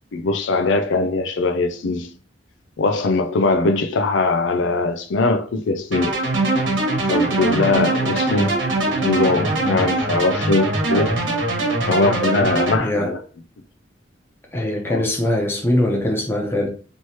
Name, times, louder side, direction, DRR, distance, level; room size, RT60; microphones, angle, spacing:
voice 1, 0.1-2.1 2.8-6.2 7.1-8.5 8.9-11.5 11.9-13.2 14.9-15.0, left 3 dB, 75° left, 0.5 m, -21 dB
sound 1, 5.9-12.8, right 2 dB, 80° right, 1.2 m, -22 dB
voice 2, 12.8-13.1 14.5-16.7, left 1 dB, 10° left, 0.9 m, -21 dB
3.1 x 3.0 x 4.3 m
head